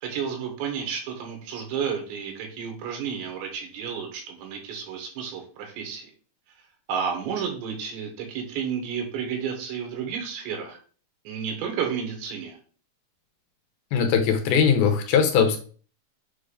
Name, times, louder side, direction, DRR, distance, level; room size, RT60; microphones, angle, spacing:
voice 1, 0.0-6.1 6.9-10.8 11.3-12.6, right 7 dB, 85° right, 3 dB, 3.7 m, -31 dB
voice 2, 13.9-15.6, left 7 dB, 75° left, 4 dB, 2.5 m, -20 dB
7.8 x 2.6 x 4.9 m, 0.41 s
omnidirectional pair, 5.0 m